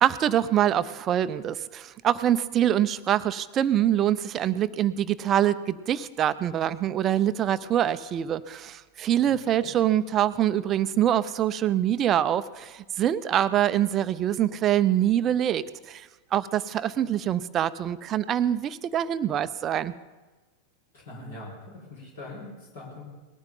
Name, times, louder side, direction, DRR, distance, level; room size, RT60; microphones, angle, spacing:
voice 1, 0.0-19.9, right 11 dB, 30° right, 14 dB, 0.6 m, -25 dB
voice 2, 9.3-9.7 20.9-23.0, left 2 dB, 55° left, -3 dB, 5.3 m, -42 dB
20.0 x 14.0 x 3.9 m, 1.2 s
figure-of-eight pair, 90°, 0 cm